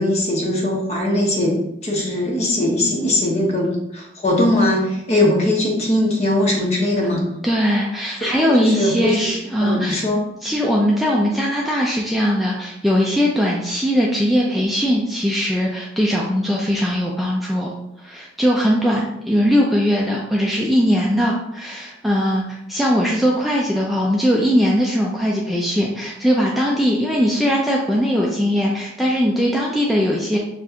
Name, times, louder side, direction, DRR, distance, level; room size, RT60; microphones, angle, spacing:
voice 1, 0.0-7.2 8.4-9.1 9.6-10.2, left 1 dB, 35° left, -1 dB, 1.1 m, -20 dB
voice 2, 7.4-10.1 10.4-17.7 18.0-30.4, equal, ahead, -3 dB, 0.4 m, -20 dB
6.9 x 2.5 x 2.8 m, 0.85 s
head